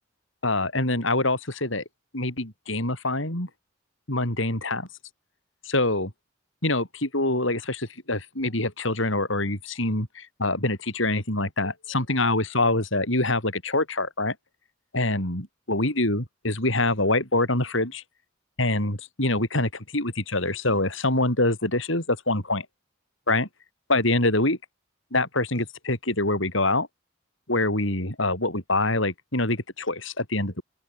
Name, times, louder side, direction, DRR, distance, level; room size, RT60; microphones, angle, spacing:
voice 1, 0.4-1.8 2.1-3.5 4.1-4.9 5.7-6.1 6.6-14.3 14.9-18.0 18.6-22.7 23.3-23.5 23.9-24.6 25.1-26.9 27.5-30.6, left 2 dB, 70° left, 7.6 m, -25 dB
open air
head